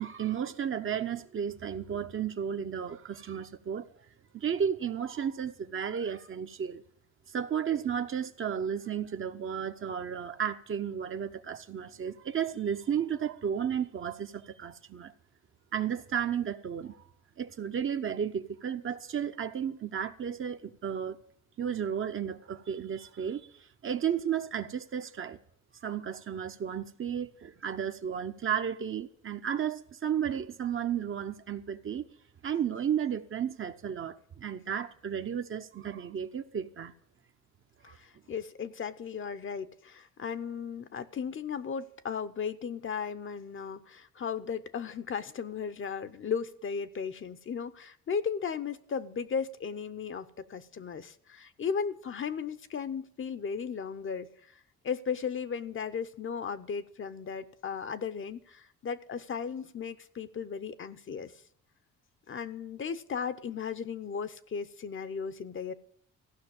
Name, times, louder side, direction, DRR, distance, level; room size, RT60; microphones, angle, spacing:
voice 1, 0.0-3.9 4.3-6.8 7.3-15.1 15.7-17.0 17.4-21.2 21.6-23.5 23.8-25.4 25.8-32.1 32.4-36.9 37.8-38.0, right 8 dB, 45° right, 0.8 m, -33 dB
voice 2, 37.8-54.3 54.8-61.3 62.3-65.7, left 6 dB, 45° left, 0.7 m, -36 dB
15.5 x 5.8 x 8.7 m
cardioid pair, 90°, 30 cm